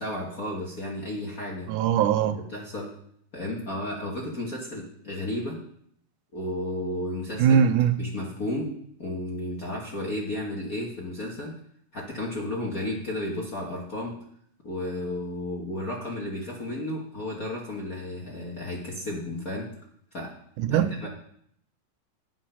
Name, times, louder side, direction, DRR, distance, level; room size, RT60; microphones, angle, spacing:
voice 1, 0.0-1.7 2.2-2.9 3.3-5.6 6.3-7.6 8.0-8.7 9.0-11.6 11.9-14.1 14.6-19.7 20.1-20.3 20.7-21.1, left 1 dB, 45° left, -2 dB, 1.2 m, -33 dB
voice 2, 1.7-2.4 7.4-8.0 20.6-20.9, right 8 dB, 85° right, 9 dB, 2.2 m, -21 dB
11.0 x 7.6 x 5.6 m, 0.68 s
omnidirectional pair, 3.5 m